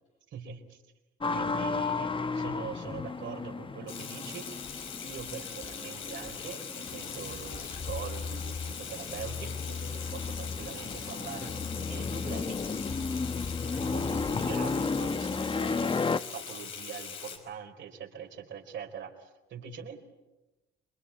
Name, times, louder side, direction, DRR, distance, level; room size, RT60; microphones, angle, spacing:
voice 1, 0.3-0.8 1.3-4.5 5.0-12.6 13.6-16.0 16.3-20.0, right 7 dB, 70° right, 3 dB, 4.3 m, -43 dB
sound 1, 1.2-16.2, left 4 dB, 25° left, 1.0 m, -34 dB
Water tap faucet / Sink (filling or washing), 3.9-17.4, left 7 dB, 90° left, 5.3 m, -42 dB
sound 2, 6.9-14.3, left 5 dB, 70° left, 3.3 m, -40 dB
28.0 x 23.5 x 8.5 m, 1.0 s
cardioid pair, 90°, 20 cm